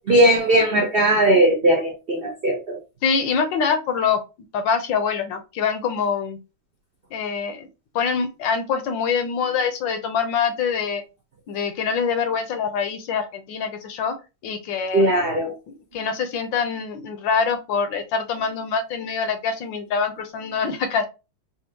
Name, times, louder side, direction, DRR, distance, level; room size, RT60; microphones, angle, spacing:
voice 1, 0.1-2.8 14.9-15.5, right 1 dB, 70° right, -2 dB, 0.5 m, -18 dB
voice 2, 3.0-4.2 4.5-6.4 7.1-7.7 7.9-11.0 11.5-14.1 14.4-15.3 15.9-21.1, left 6 dB, 75° left, 8 dB, 1.3 m, -24 dB
4.3 x 2.5 x 2.8 m, 0.28 s
omnidirectional pair, 2.2 m